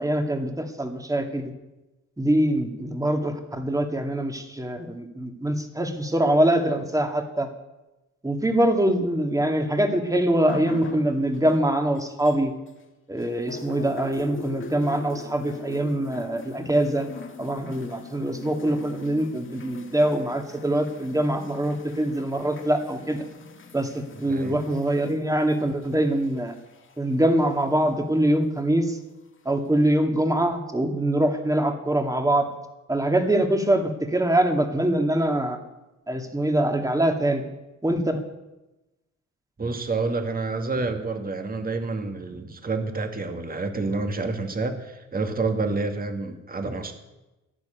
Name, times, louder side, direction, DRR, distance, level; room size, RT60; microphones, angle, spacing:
voice 1, 0.0-1.5 2.2-7.5 8.2-12.5 13.1-17.1 17.4-23.3 23.7-23.9 24.2-26.5 27.0-29.0 29.5-32.5 32.9-35.6 36.1-37.4 37.8-38.2, right 1 dB, 10° right, 5 dB, 2.2 m, -24 dB
sound 1, 10.5-12.8 13.2-27.9 28.8-28.9, left 3 dB, 40° left, 1.9 m, -42 dB
voice 2, 24.3-24.6 39.6-46.9, right 3 dB, 30° right, 5 dB, 2.2 m, -28 dB
12.0 x 10.5 x 9.2 m, 1.0 s
cardioid pair, 90°, 30 cm